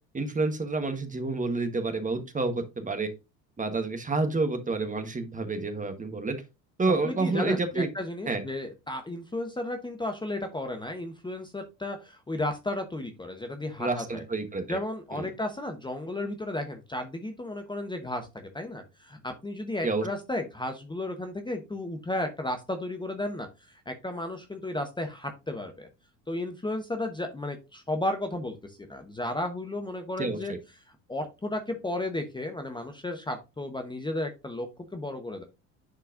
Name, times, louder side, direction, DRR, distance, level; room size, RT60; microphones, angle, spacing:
voice 1, 0.1-3.1 3.6-6.4 6.8-7.9 8.3-8.4 13.8-14.8 15.1-15.3 19.8-20.1 30.2-30.6, right 3 dB, 15° right, 7 dB, 1.3 m, -29 dB
voice 2, 7.0-14.2 14.7-25.9 26.3-30.5 31.1-35.4, left 1 dB, 10° left, 5 dB, 1.0 m, -34 dB
10.5 x 4.5 x 2.6 m, 0.26 s
figure-of-eight pair, 70°, 49 cm